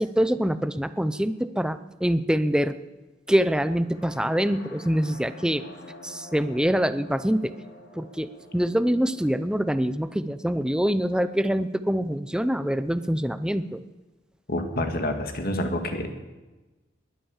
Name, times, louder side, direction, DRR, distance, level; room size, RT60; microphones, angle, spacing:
voice 1, 0.0-2.8 3.3-5.6 6.0-7.5 8.0-13.8, equal, 5° right, 12 dB, 0.6 m, -25 dB
sound 1, 3.8-11.7, left 1 dB, 90° left, 3.4 m, -48 dB
voice 2, 14.5-16.1, left 1 dB, 50° left, 5 dB, 2.0 m, -28 dB
21.0 x 9.1 x 7.2 m, 1.2 s
head